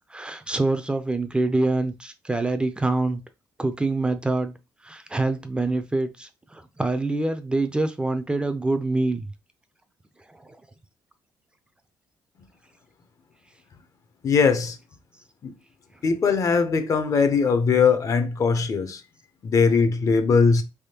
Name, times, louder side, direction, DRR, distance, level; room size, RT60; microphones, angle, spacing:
voice 1, 0.1-3.2 3.6-4.5 4.8-9.3 10.3-10.4, right 2 dB, 15° right, 0.4 m, -25 dB
voice 2, 14.2-14.8 15.4-15.5 16.0-19.0 19.4-20.6, left 5 dB, 45° left, 0.6 m, -20 dB
3.5 x 3.0 x 2.8 m
cardioid pair, 95°, 8 cm